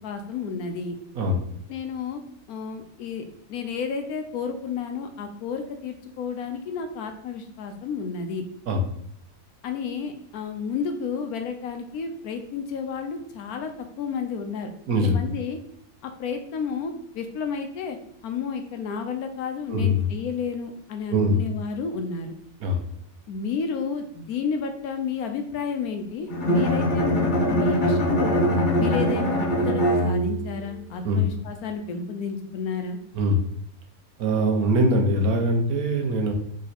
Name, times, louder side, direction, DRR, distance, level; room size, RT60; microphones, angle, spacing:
voice 1, 0.0-1.0 1.7-2.2 2.5-3.2 3.5-8.4 9.6-13.7 14.0-15.6 16.0-18.0 18.2-22.3 23.3-28.4 28.8-33.0, left 6 dB, 70° left, 6 dB, 1.0 m, -31 dB
voice 2, 14.9-15.2 19.7-20.0 21.1-21.4 22.6-22.8 31.0-31.3 33.1-33.4 34.2-36.3, equal, 65° right, 3 dB, 1.2 m, -22 dB
Bowed string instrument, 26.3-30.6, equal, 45° left, 0.6 m, -22 dB
3.7 x 3.2 x 4.1 m, 0.72 s
omnidirectional pair, 1.7 m